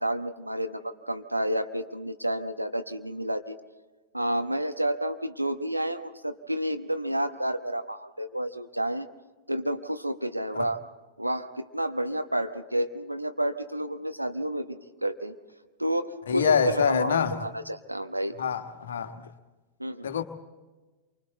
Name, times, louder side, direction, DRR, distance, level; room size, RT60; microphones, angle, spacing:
voice 1, 0.0-3.6 4.1-9.1 9.5-10.8 11.2-15.3 15.8-18.3 19.8-20.1, right 1 dB, 85° right, 1.0 m, -30 dB
voice 2, 16.3-17.4 18.4-19.3 20.0-20.2, left 7 dB, 65° left, 1.3 m, -25 dB
28.0 x 24.5 x 4.0 m
figure-of-eight pair, 90°, 0 cm